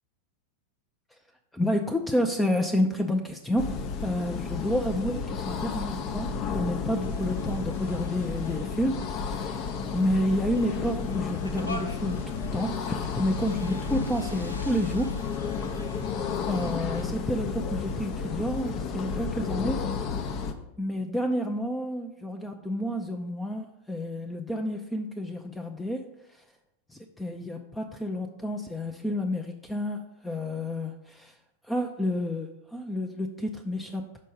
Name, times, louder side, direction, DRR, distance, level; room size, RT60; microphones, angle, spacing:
voice 1, 1.5-15.2 16.4-19.9 20.8-26.0 26.3-26.4 26.9-31.4 31.6-34.1, left 1 dB, 5° left, 4 dB, 0.5 m, -30 dB
sound 1, 3.6-20.5, left 5 dB, 40° left, 0.7 m, -32 dB
sound 2, 7.0-17.0, left 1 dB, 85° left, 0.8 m, -45 dB
6.3 x 4.5 x 5.6 m, 0.86 s
figure-of-eight pair, 90°, 0 cm